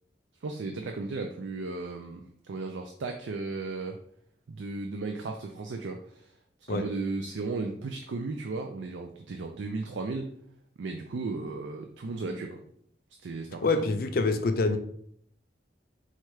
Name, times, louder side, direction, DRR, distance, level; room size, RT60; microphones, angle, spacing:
voice 1, 0.4-4.0 4.5-6.3 6.6-10.3 10.8-12.6 13.2-13.8, right 3 dB, 90° right, 4 dB, 0.4 m, -35 dB
voice 2, 13.6-14.8, left 3 dB, 55° left, 7 dB, 0.4 m, -26 dB
4.3 x 2.3 x 4.6 m, 0.66 s
head